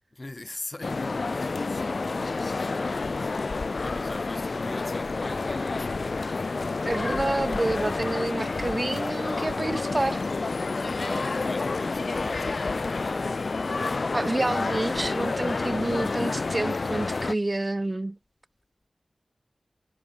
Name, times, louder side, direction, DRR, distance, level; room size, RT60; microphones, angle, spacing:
voice 1, 0.2-2.2 2.4-3.2 3.5-6.3 10.9-13.4, left 2 dB, 35° left, 5.4 m, -41 dB
sound 1, 0.8-17.3, left 3 dB, 65° left, 0.4 m, -29 dB
voice 2, 6.9-10.2 14.1-18.2, right 2 dB, 30° right, 0.4 m, -28 dB
wide cardioid pair, 75°, 0 cm